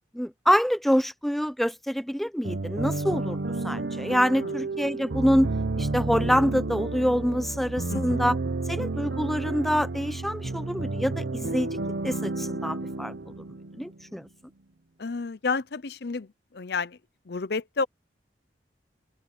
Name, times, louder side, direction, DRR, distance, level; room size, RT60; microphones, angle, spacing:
voice 1, 0.1-5.5 5.8-8.4 8.7-11.7 12.0-13.1 13.7-14.3, equal, ahead, 0.9 m, -26 dB
sound 1, 2.4-14.2, right 2 dB, 85° right, 0.9 m, -31 dB
voice 2, 7.9-8.2 15.0-17.0 17.3-17.9, left 4 dB, 65° left, 0.7 m, -31 dB
open air
head